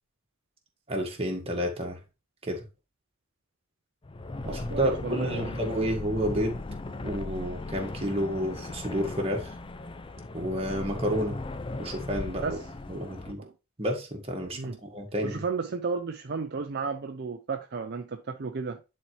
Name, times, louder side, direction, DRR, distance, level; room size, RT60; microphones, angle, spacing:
voice 1, 0.9-2.0 2.4-2.7 4.5-6.6 7.0-9.5 10.3-11.4 11.8-12.6 12.9-13.4 13.8-15.4, equal, 25° right, 1.6 m, -30 dB
sound 1, 4.0-13.3, left 2 dB, 25° left, 0.4 m, -37 dB
voice 2, 4.4-5.7 12.4-12.7 13.4-13.5 14.5-14.8 15.2-18.8, right 4 dB, 50° right, 0.5 m, -33 dB
10.0 x 4.2 x 3.2 m
head